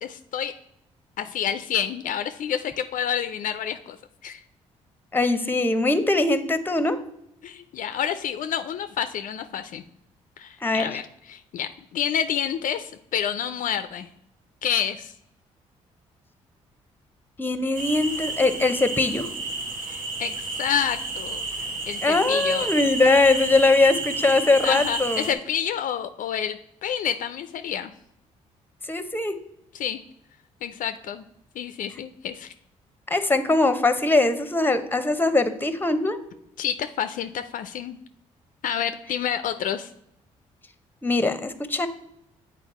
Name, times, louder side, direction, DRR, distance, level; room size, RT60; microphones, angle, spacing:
voice 1, 0.0-0.5 1.2-4.0 4.2-4.4 7.4-9.8 10.4-14.1 14.6-15.1 19.9-21.4 21.9-22.7 24.6-27.9 29.7-30.0 30.6-31.2 31.6-32.5 36.6-38.0 38.6-39.9, left 9 dB, 60° left, 10 dB, 0.4 m, -29 dB
voice 2, 5.1-7.0 10.6-10.9 17.4-19.3 22.0-25.3 28.9-29.3 33.1-36.2 41.0-41.9, left 2 dB, 15° left, 11 dB, 0.8 m, -21 dB
sound 1, 17.8-25.3, right 3 dB, 70° right, 1.1 m, -31 dB
8.0 x 4.1 x 4.2 m, 0.78 s
hypercardioid pair, 50°, 15 cm